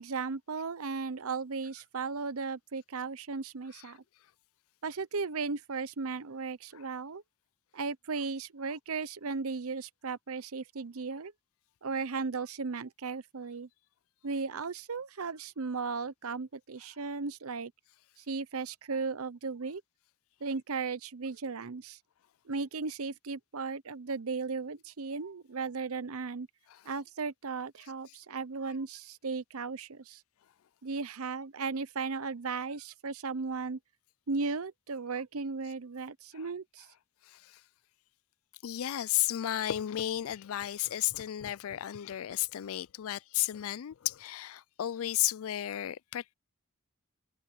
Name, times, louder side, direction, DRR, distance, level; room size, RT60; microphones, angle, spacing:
voice 1, 0.0-4.0 4.8-7.2 7.7-11.3 11.8-13.7 14.2-17.7 18.2-19.8 20.4-22.0 22.5-26.5 26.8-30.2 30.8-33.8 34.3-36.9, right 4 dB, 75° right, 0.8 m, -36 dB
voice 2, 37.3-37.6 38.6-46.3, left 13 dB, 70° left, 0.4 m, -33 dB
head